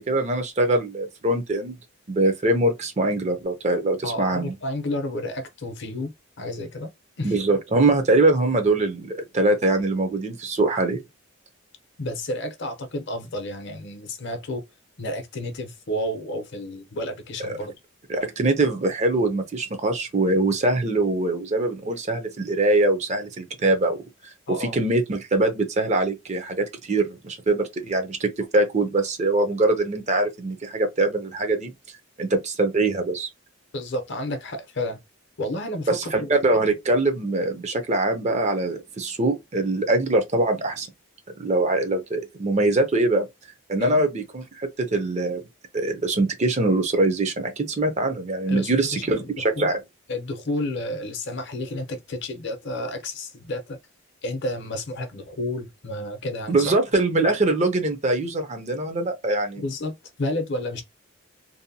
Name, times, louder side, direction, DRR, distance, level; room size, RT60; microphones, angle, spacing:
voice 1, 0.0-1.8 2.1-4.5 7.2-11.0 17.4-17.6 18.1-24.0 24.6-31.7 32.2-33.3 35.9-40.9 41.4-43.3 43.7-45.4 45.7-49.8 56.5-59.6, right 2 dB, 30° right, 0.5 m, -23 dB
voice 2, 4.0-6.1 6.4-6.9 7.2-7.3 12.0-14.6 15.0-17.7 24.5-24.7 33.7-35.0 35.4-36.3 43.8-44.0 48.5-48.7 49.0-49.7 50.1-53.8 54.2-56.6 59.6-60.8, left 1 dB, 55° left, 0.6 m, -31 dB
2.7 x 2.1 x 2.6 m
head